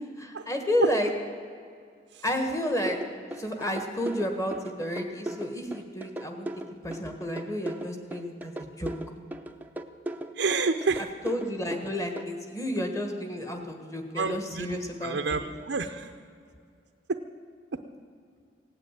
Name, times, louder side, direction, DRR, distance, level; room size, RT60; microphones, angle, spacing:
voice 1, 0.2-1.1 2.2-3.0 3.3-6.5 6.8-8.9 11.2-15.4, left 1 dB, 15° left, 4 dB, 1.5 m, -31 dB
sound 1, 2.9-12.3, right 1 dB, 10° right, 0.6 m, -37 dB
voice 2, 10.3-11.1 14.1-16.1, right 4 dB, 75° right, 6 dB, 0.6 m, -29 dB
17.0 x 9.0 x 9.1 m, 2.3 s
head